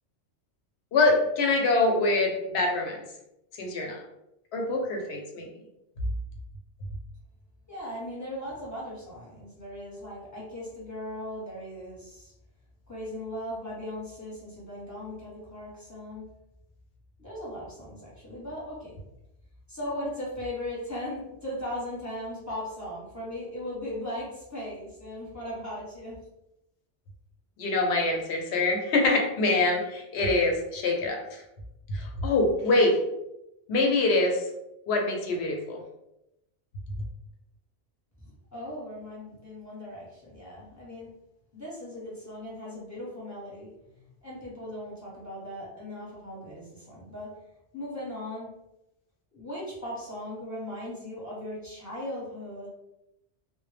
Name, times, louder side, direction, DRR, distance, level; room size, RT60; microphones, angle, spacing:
voice 1, 0.9-3.0 3.6-4.0 4.5-5.5 27.6-31.4 31.9-33.0 33.7-34.5 34.9-35.8, left 2 dB, 65° left, 1 dB, 0.8 m, -25 dB
voice 2, 7.7-12.3 12.9-16.2 17.2-19.0 19.7-26.1 38.2-41.1 41.5-47.3 47.7-48.5 49.3-52.7, left 1 dB, 15° left, -7 dB, 0.8 m, -38 dB
2.1 x 2.0 x 3.1 m, 0.86 s
omnidirectional pair, 1.2 m